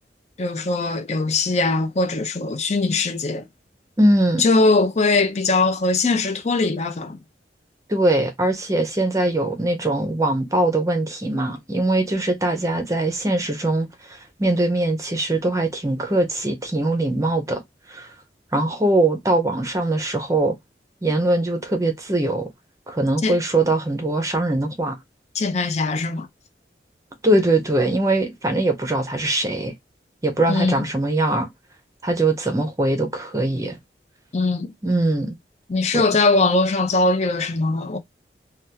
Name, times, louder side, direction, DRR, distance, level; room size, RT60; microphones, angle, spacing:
voice 1, 0.4-3.5 4.4-7.2 23.2-23.4 25.3-26.3 30.5-30.8 34.3-34.7 35.7-38.0, left 3 dB, 40° left, 0.5 m, -21 dB
voice 2, 4.0-4.5 7.9-17.6 17.9-18.1 18.5-20.6 21.0-22.5 22.9-25.0 27.2-29.7 30.2-31.5 32.0-33.8 34.8-35.4 35.9-36.0, right 2 dB, 20° right, 0.6 m, -21 dB
3.4 x 2.3 x 2.7 m
head